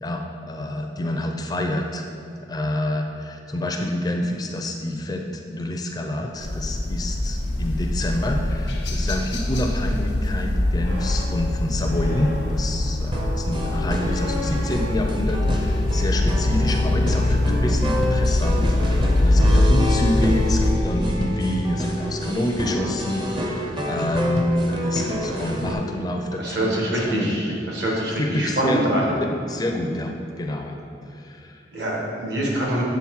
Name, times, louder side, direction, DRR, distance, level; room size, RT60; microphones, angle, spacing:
voice 1, 0.0-2.0 2.5-27.8 28.2-28.8 29.2-31.6, left 1 dB, 20° left, 3 dB, 0.4 m, -27 dB
sound 1, 6.3-16.3, left 1 dB, 85° right, 1.2 m, -39 dB
sound 2, 6.4-20.7, left 1 dB, 90° left, 0.9 m, -23 dB
sound 3, 13.1-25.7, equal, 25° right, 0.6 m, -28 dB
voice 2, 26.4-29.1 31.7-32.8, right 1 dB, 70° right, -3 dB, 1.5 m, -24 dB
7.2 x 3.8 x 4.6 m, 2.6 s
head